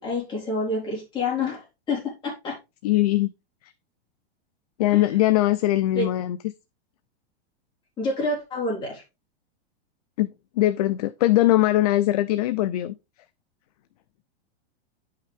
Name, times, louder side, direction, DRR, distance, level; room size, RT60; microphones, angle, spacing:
voice 1, 0.0-2.6 4.9-5.1 5.9-6.1 8.0-9.0, left 2 dB, 15° left, 3.9 m, -28 dB
voice 2, 2.8-3.3 4.8-6.4 10.2-10.3 10.6-12.9, left 15 dB, 40° left, 0.4 m, -21 dB
9.9 x 5.6 x 3.4 m
supercardioid pair, 165°, 31 cm